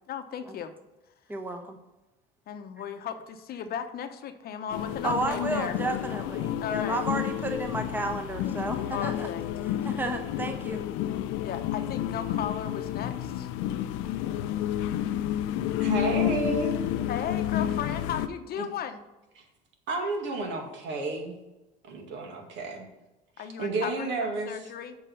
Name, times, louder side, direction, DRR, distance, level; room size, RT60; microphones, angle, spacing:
voice 1, 0.1-0.7 2.5-5.8 6.6-7.1 8.9-9.4 11.4-13.5 17.1-19.0 23.4-25.0, left 8 dB, 50° left, 8 dB, 0.9 m, -35 dB
voice 2, 1.3-1.8 5.0-9.3 9.8-10.8, right 2 dB, 10° right, 4 dB, 1.1 m, -32 dB
sound 1, 4.7-18.3, left 11 dB, 75° left, 0.6 m, -30 dB
voice 3, 15.8-16.8 18.6-18.7 19.9-21.4 21.8-22.9 23.4-24.7, right 3 dB, 65° right, 2 dB, 2.2 m, -31 dB
7.6 x 5.0 x 6.7 m, 1.0 s
supercardioid pair, 110°, 20 cm